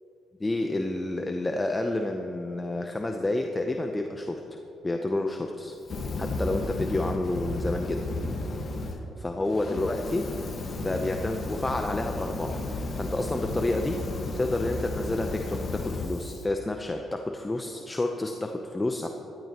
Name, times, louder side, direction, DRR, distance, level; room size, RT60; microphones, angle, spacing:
voice 1, 0.4-4.4 4.8-5.7 6.2-8.0 9.2-10.4 10.8-14.0 14.3-19.1, left 2 dB, 20° left, 4 dB, 0.7 m, -29 dB
Fire, 5.8-9.0 9.4-16.4, left 2 dB, 45° left, 1.4 m, -33 dB
16.0 x 12.5 x 3.0 m, 2.9 s
cardioid pair, 90°, 0 cm